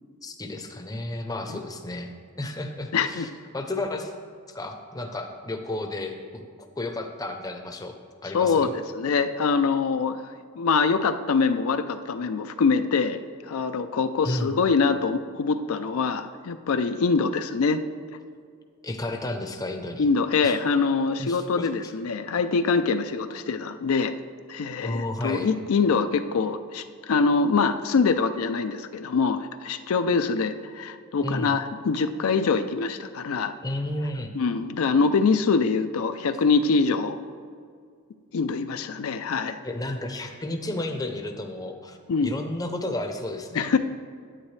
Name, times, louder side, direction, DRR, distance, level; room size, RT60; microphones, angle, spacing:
voice 1, 0.2-2.1 2.4-4.1 4.5-8.0 8.2-8.7 14.2-14.5 18.8-20.1 20.4-20.6 21.2-21.9 24.8-25.5 31.2-31.5 33.6-34.3 39.6-43.7, left 1 dB, 15° left, 5 dB, 0.6 m, -32 dB
voice 2, 2.9-3.3 8.3-10.2 10.6-13.2 13.5-17.8 20.0-24.1 24.5-33.5 34.3-37.2 38.3-39.6 42.1-42.3 43.5-43.8, left 4 dB, 75° left, 9 dB, 0.4 m, -24 dB
10.0 x 9.0 x 3.2 m, 2.1 s
head